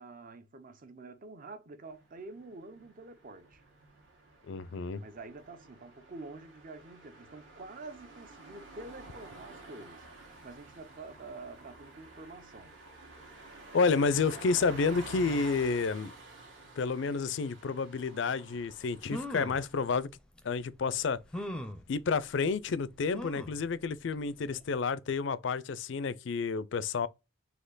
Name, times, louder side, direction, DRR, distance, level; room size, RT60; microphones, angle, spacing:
voice 1, 0.0-3.6 5.0-10.1 10.4-12.8, right 3 dB, 40° right, 0.6 m, -47 dB
sound 1, 1.9-20.0, right 2 dB, 70° right, 1.6 m, -50 dB
voice 2, 4.5-5.0 13.7-16.1 16.8-20.1 20.4-21.2 21.9-27.1, left 4 dB, 60° left, 0.4 m, -30 dB
sound 2, 18.6-18.7 19.0-19.6 20.4-20.5 21.3-21.8 23.1-23.6 24.1-24.2 24.5-24.6, left 1 dB, 5° left, 0.5 m, -39 dB
4.3 x 2.8 x 3.9 m
head